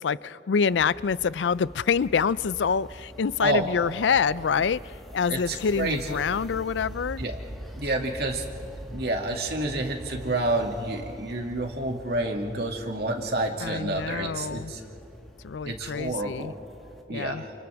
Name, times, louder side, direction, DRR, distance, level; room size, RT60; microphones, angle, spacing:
voice 1, 0.0-7.2 13.6-14.7 15.4-16.5 17.1-17.4, left 6 dB, 85° left, 19 dB, 0.4 m, -26 dB
sound 1, 0.7-17.0, equal, ahead, 2.1 m, -44 dB
voice 2, 5.3-6.0 7.2-7.4 7.8-8.4 8.9-14.8 15.6-16.5 17.1-17.5, right 2 dB, 60° right, 1 dB, 2.4 m, -29 dB
29.5 x 29.5 x 3.5 m, 2.7 s
head